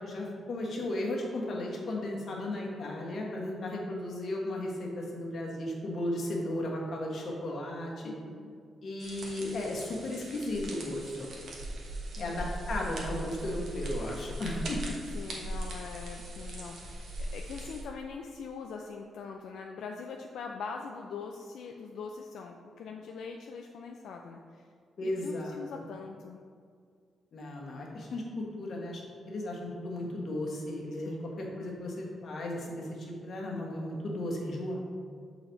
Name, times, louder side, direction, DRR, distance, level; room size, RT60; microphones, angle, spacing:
voice 1, 0.0-8.1 8.8-11.3 12.2-14.8 25.0-25.6 27.3-34.8, left 1 dB, 45° left, -1 dB, 1.3 m, -35 dB
voice 2, 8.0-8.5 12.2-12.5 15.0-24.7 25.0-26.4 31.0-31.3, left 5 dB, 75° left, 2 dB, 0.4 m, -43 dB
sound 1, 9.0-17.8, right 1 dB, 55° right, 1.1 m, -39 dB
6.8 x 4.1 x 4.5 m, 2.1 s
cardioid pair, 155°, 0 cm